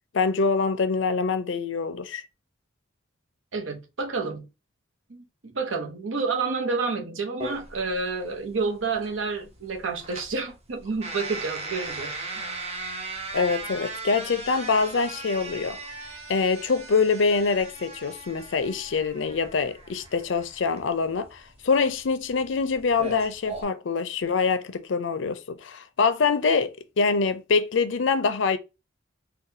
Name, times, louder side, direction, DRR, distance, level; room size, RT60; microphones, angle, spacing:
voice 1, 0.1-2.2 13.3-15.8 16.3-28.6, left 4 dB, 75° left, 0.5 m, -25 dB
voice 2, 3.5-4.5 5.1-12.1, right 4 dB, 85° right, 0.8 m, -29 dB
sound 1, 7.4-23.6, right 3 dB, 30° right, 0.7 m, -38 dB
3.9 x 2.3 x 2.7 m
head